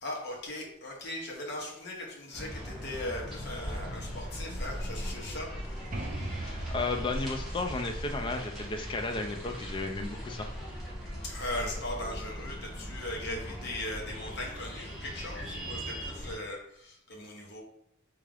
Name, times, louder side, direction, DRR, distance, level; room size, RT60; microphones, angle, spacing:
voice 1, 0.0-5.5 6.0-6.3 11.2-17.6, left 1 dB, 55° left, -1 dB, 0.8 m, -39 dB
sound 1, 2.3-16.3, equal, ahead, 1.1 m, -39 dB
sound 2, 5.9-9.6, right 1 dB, 40° right, 0.5 m, -41 dB
voice 2, 6.3-10.5, left 3 dB, 25° left, 4 dB, 0.3 m, -34 dB
3.5 x 2.4 x 3.3 m, 0.74 s
head